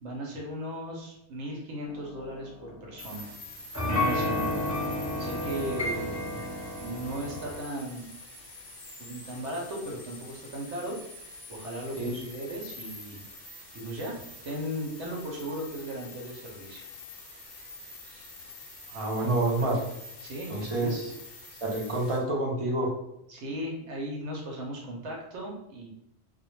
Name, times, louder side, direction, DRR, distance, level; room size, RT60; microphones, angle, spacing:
voice 1, 0.0-3.3 3.8-4.7 5.2-6.2 6.8-8.1 9.0-11.0 11.5-13.2 13.7-16.8 20.2-20.9 23.3-25.9, right 1 dB, 80° right, -1 dB, 0.9 m, -37 dB
sound 1, 1.8-3.3 3.7-7.6, left 1 dB, 15° right, 0.8 m, -32 dB
sound 2, 3.0-22.2, left 2 dB, 50° left, 0.7 m, -46 dB
voice 2, 18.9-19.8 20.5-21.1 21.6-22.9, right 2 dB, 45° right, -3 dB, 0.4 m, -28 dB
2.1 x 2.1 x 3.0 m, 0.80 s
omnidirectional pair, 1.2 m